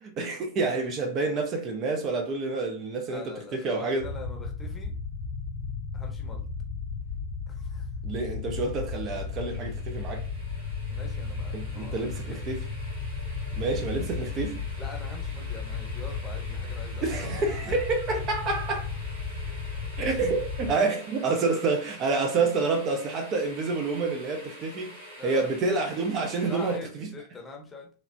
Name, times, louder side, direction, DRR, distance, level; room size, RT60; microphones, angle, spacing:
voice 1, 0.0-4.1 8.0-10.2 11.5-12.6 13.5-14.6 17.0-18.9 20.0-25.0 25.2-27.1, right 3 dB, 35° right, 0.5 m, -28 dB
voice 2, 3.0-4.9 5.9-6.4 7.5-7.9 10.9-12.5 14.8-17.8 20.0-20.2 25.2-25.5 26.4-27.9, left 4 dB, 15° left, 0.8 m, -43 dB
sound 1, 4.0-20.8, left 4 dB, 70° left, 0.7 m, -34 dB
sound 2, 8.7-26.8, right 1 dB, 80° right, 1.2 m, -47 dB
3.1 x 2.0 x 2.5 m
figure-of-eight pair, 90°, 0 cm